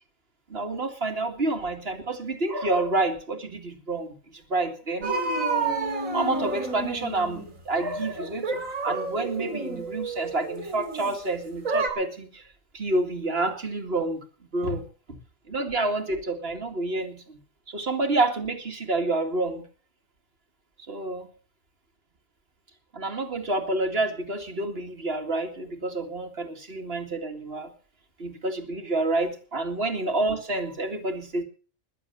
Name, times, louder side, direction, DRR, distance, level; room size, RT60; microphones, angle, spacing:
voice 1, 0.5-5.1 6.1-12.5 12.7-14.2 14.5-15.2 15.5-17.4 17.7-19.7 20.9-21.3 22.9-27.7 28.2-31.4, right 2 dB, 45° right, 6 dB, 2.4 m, -28 dB
sound 1, 5.0-7.5 8.2-11.1 11.6-11.9, right 3 dB, 70° right, 3.2 m, -29 dB
21.0 x 7.6 x 6.9 m, 0.40 s
omnidirectional pair, 1.5 m